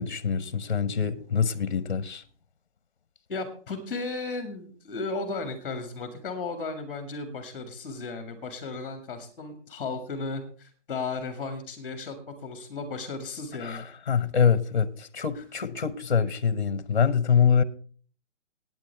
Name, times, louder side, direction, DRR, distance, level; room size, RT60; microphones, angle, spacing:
voice 1, 0.0-2.2 13.6-13.8 14.1-17.6, left 7 dB, 40° left, 0.8 m, -25 dB
voice 2, 3.3-13.9 15.3-15.4, left 3 dB, 10° left, 1.5 m, -35 dB
16.5 x 9.1 x 3.3 m
hypercardioid pair, 175°, 35 cm